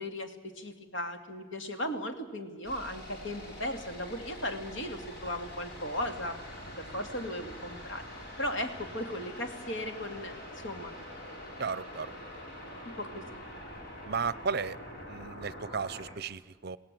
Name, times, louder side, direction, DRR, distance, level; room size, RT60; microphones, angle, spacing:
voice 1, 0.0-6.4 6.8-8.0 8.4-10.9 13.0-13.2, left 1 dB, 75° left, 5 dB, 2.7 m, -37 dB
sound 1, 2.6-16.1, left 1 dB, 50° left, 5.5 m, -45 dB
voice 2, 11.6-12.1 14.1-14.8 15.1-16.8, right 5 dB, 55° right, 17 dB, 0.6 m, -34 dB
27.5 x 18.0 x 7.7 m, 1.3 s
head